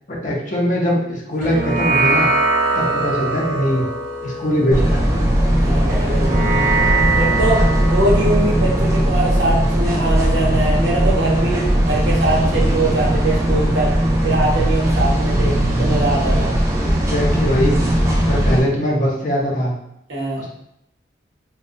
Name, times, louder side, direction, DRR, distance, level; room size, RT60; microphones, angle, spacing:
voice 1, 0.1-2.3 2.7-3.8 4.2-5.0 16.8-17.8 18.2-19.7 20.4-20.5, equal, 45° left, -2 dB, 0.5 m, -21 dB
sound 1, 1.4-10.1, right 3 dB, 50° right, 0.8 m, -23 dB
sound 2, 4.7-18.6, right 1 dB, 15° right, 0.3 m, -18 dB
voice 2, 5.6-6.3 7.2-13.9 14.2-16.5 20.1-20.4, right 2 dB, 90° right, -4 dB, 0.8 m, -22 dB
2.6 x 2.1 x 2.4 m, 0.77 s
head